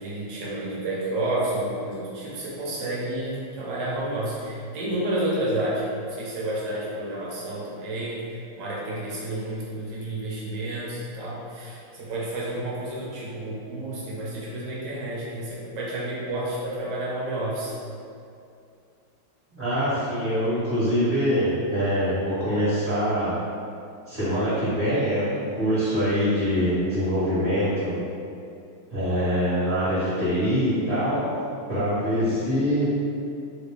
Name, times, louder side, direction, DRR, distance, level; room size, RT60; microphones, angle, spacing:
voice 1, 0.0-17.8, right 1 dB, 70° right, -6 dB, 1.2 m, -30 dB
voice 2, 19.6-23.3 24.1-27.9 28.9-31.3 31.7-32.9, equal, 35° right, -15 dB, 1.2 m, -24 dB
3.2 x 2.8 x 3.4 m, 2.5 s
omnidirectional pair, 2.2 m